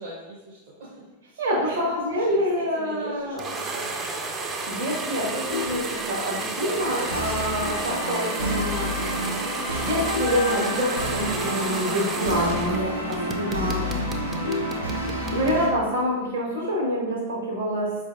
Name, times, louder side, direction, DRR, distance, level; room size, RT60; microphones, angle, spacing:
voice 1, 0.0-4.9 6.6-7.1, right 2 dB, 50° right, -6 dB, 0.7 m, -40 dB
voice 2, 1.4-3.4 4.7-8.9 9.8-13.8 15.3-18.0, equal, 70° right, -4 dB, 1.1 m, -26 dB
sound 1, 3.4-12.8 13.1-15.6, right 3 dB, 20° right, 0.4 m, -32 dB
Vehicle horn car horn honking, 5.2-6.7 7.2-7.4 7.7-7.8 8.2-8.3 8.6-9.0 9.5-11.4 11.7-11.8 12.1-12.2 12.6-12.7 13.1-13.2 13.4-15.5 16.7-17.1, left 4 dB, 70° left, 0.3 m, -35 dB
sound 2, 6.8-15.7, equal, 90° right, 0.7 m, -29 dB
4.4 x 2.6 x 2.4 m, 1.1 s
figure-of-eight pair, 90°, 0 cm